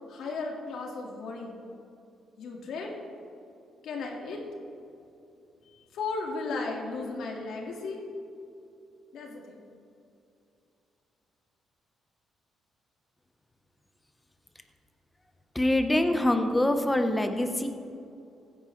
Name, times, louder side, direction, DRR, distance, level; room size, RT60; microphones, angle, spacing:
voice 1, 0.1-1.6 2.4-2.9 3.8-4.4 5.7-8.0 9.1-9.6, left 3 dB, 75° left, 0 dB, 2.0 m, -35 dB
voice 2, 15.5-17.7, left 1 dB, 15° left, 6 dB, 1.1 m, -24 dB
15.5 x 9.3 x 3.3 m, 2.6 s
cardioid pair, 80°, 0 cm